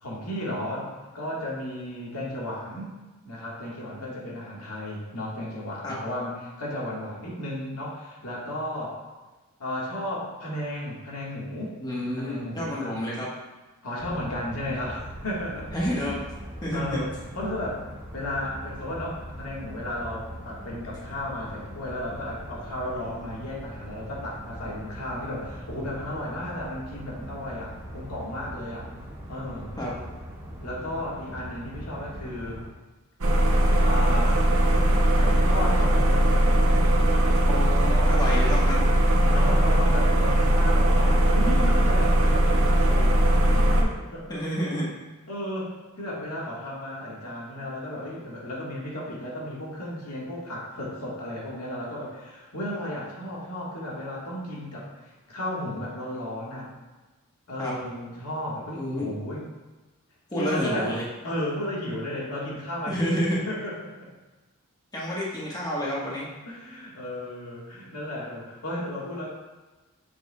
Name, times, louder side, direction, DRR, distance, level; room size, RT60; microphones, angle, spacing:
voice 1, 0.0-2.9 3.3-9.0 9.6-11.7 12.2-13.0 13.8-16.2 16.7-17.8 18.1-28.9 29.3-29.7 30.6-32.6 33.8-34.5 35.0-36.6 39.3-44.2 45.3-56.7 57.5-59.5 60.4-61.0 61.2-64.1 66.5-69.3, left 1 dB, 90° left, -4 dB, 1.8 m, -34 dB
voice 2, 11.8-13.3 15.7-16.2 16.6-17.0 29.8-29.9 37.5-38.9 44.3-44.9 57.6-57.7 58.7-59.1 60.3-61.0 62.9-63.4 64.9-66.3, equal, 20° left, -5 dB, 1.4 m, -29 dB
sound 1, 14.0-32.7, equal, 15° right, 1.7 m, -41 dB
sound 2, 33.2-43.8, right 1 dB, 65° right, 0.8 m, -20 dB
7.0 x 6.5 x 2.4 m, 1.2 s
head